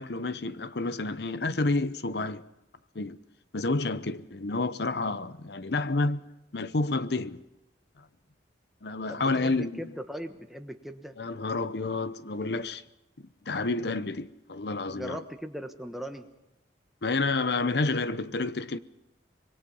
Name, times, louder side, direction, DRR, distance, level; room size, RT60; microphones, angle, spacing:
voice 1, 0.0-2.4 2.9-3.2 3.5-6.2 6.5-7.4 8.8-9.9 11.2-12.8 13.2-15.2 17.0-18.8, left 3 dB, 60° left, 0.8 m, -29 dB
voice 2, 9.1-11.1 14.9-16.3, equal, ahead, 1.3 m, -39 dB
25.5 x 22.0 x 5.4 m
head